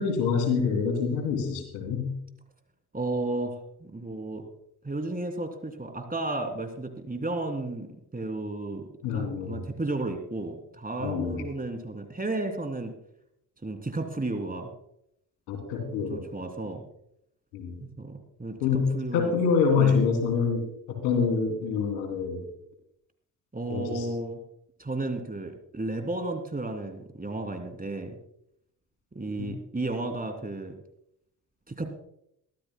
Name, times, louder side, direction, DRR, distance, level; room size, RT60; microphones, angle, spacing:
voice 1, 0.0-2.1 9.0-9.6 11.0-11.4 15.5-16.2 17.5-17.8 18.6-20.6 20.9-22.4 23.7-24.1 29.4-29.5, left 5 dB, 85° left, 4 dB, 3.0 m, -26 dB
voice 2, 2.9-4.4 4.8-7.9 8.1-12.9 13.6-14.7 16.1-16.8 18.0-19.3 19.8-20.0 23.5-24.4 24.8-28.2 29.1-30.7 31.7-31.9, right 2 dB, 20° right, 6 dB, 2.8 m, -33 dB
23.0 x 13.5 x 2.2 m, 0.74 s
hypercardioid pair, 45°, 43 cm